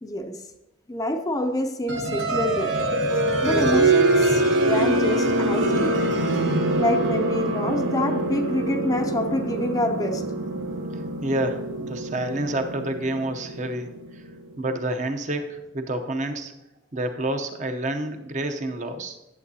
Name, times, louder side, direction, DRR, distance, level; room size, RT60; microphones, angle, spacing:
voice 1, 0.0-0.4 0.9-2.8 3.4-6.0 6.8-10.2, left 1 dB, 20° left, 6 dB, 0.4 m, -26 dB
sound 1, 1.9-14.4, right 2 dB, 85° right, 1.0 m, -24 dB
voice 2, 11.2-13.9 14.6-16.5 16.9-19.2, right 1 dB, 40° right, 6 dB, 0.7 m, -28 dB
11.0 x 7.5 x 2.7 m, 0.96 s
head